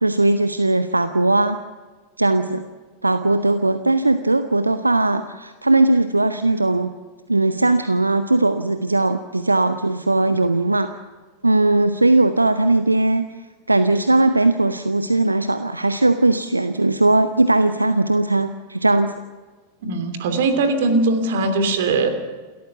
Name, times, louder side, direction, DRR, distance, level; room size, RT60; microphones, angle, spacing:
voice 1, 0.0-1.6 2.2-2.6 3.0-6.9 7.3-10.9 11.4-13.3 13.7-19.1, right 2 dB, 85° right, 11 dB, 0.8 m, -18 dB
voice 2, 19.8-22.1, right 3 dB, 55° right, 8 dB, 3.0 m, -20 dB
28.5 x 13.5 x 7.1 m, 1.4 s
figure-of-eight pair, 90°, 0 cm